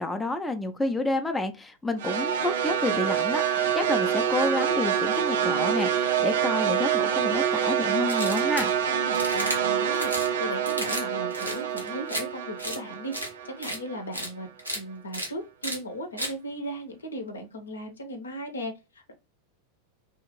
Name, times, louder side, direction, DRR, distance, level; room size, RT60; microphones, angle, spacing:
voice 1, 0.0-8.7, left 2 dB, 10° left, 0.4 m, -29 dB
sound 1, 2.0-14.3, right 8 dB, 60° right, 0.4 m, -26 dB
sound 2, 8.1-8.7 9.1-9.6 9.9-10.3 10.6-11.0 11.3-12.2 12.6-12.8 13.1-13.3 13.6-13.8 14.1-14.3 14.6-14.8 15.1-15.3 15.6-15.8 16.2-16.3, equal, 90° right, 0.8 m, -32 dB
voice 2, 8.9-14.5 14.7-19.1, equal, 75° left, 0.6 m, -37 dB
2.7 x 2.4 x 2.9 m
figure-of-eight pair, 90°, 0 cm